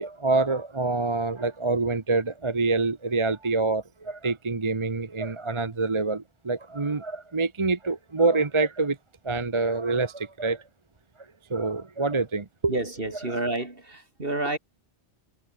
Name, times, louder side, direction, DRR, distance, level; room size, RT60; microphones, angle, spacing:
voice 1, 0.0-9.0 9.2-10.6 11.5-12.7, right 3 dB, 25° right, 1.0 m, -26 dB
voice 2, 12.7-14.6, right 2 dB, 50° right, 4.2 m, -29 dB
omnidirectional pair, 1.2 m